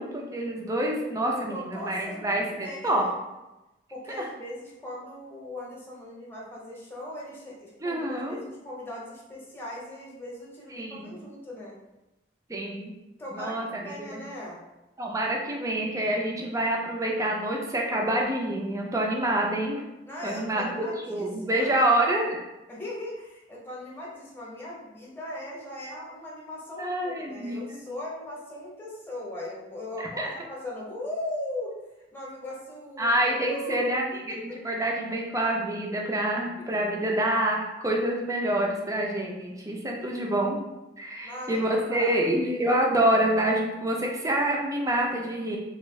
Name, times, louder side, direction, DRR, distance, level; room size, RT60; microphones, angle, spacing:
voice 1, 0.0-3.1 4.2-4.3 7.8-8.4 10.7-11.2 12.5-12.9 13.3-14.2 15.0-19.8 20.2-22.4 26.8-27.8 30.2-30.3 33.0-40.6 41.0-45.6, right 1 dB, 20° right, 0 dB, 0.5 m, -27 dB
voice 2, 1.3-3.0 3.9-11.7 13.2-14.6 20.0-21.9 22.7-31.7 32.1-33.2 33.5-34.6 36.6-36.8 41.2-42.2, left 1 dB, 10° left, -5 dB, 0.8 m, -39 dB
3.5 x 2.4 x 3.1 m, 0.99 s
head